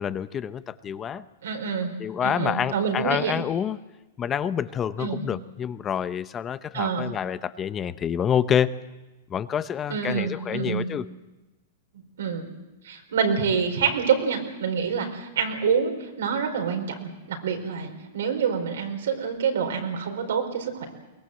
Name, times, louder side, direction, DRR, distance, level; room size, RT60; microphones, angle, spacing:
voice 1, 0.0-1.2 2.0-3.8 4.2-8.7 9.3-11.1, left 8 dB, 20° left, 14 dB, 0.7 m, -27 dB
voice 2, 1.4-1.9 2.2-3.4 5.0-5.2 6.7-7.1 9.9-10.9 12.2-12.5 12.8-20.9, right 6 dB, 85° right, 4 dB, 4.5 m, -27 dB
22.5 x 20.0 x 7.8 m, 1.1 s
supercardioid pair, 150°, 0 cm